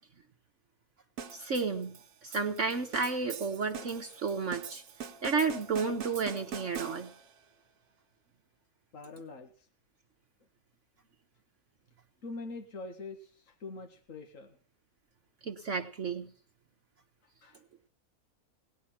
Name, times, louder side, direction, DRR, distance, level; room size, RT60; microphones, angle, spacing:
sound 1, 1.2-7.4, right 7 dB, 90° right, 1.6 m, -43 dB
voice 1, 1.3-1.9 2.2-4.8 5.2-7.1 15.4-16.3, right 4 dB, 55° right, 5 dB, 1.4 m, -32 dB
voice 2, 8.9-9.7 12.2-14.6 17.4-17.6, left 3 dB, 60° left, 4 dB, 2.2 m, -44 dB
18.5 x 11.0 x 5.9 m, 0.42 s
omnidirectional pair, 1.6 m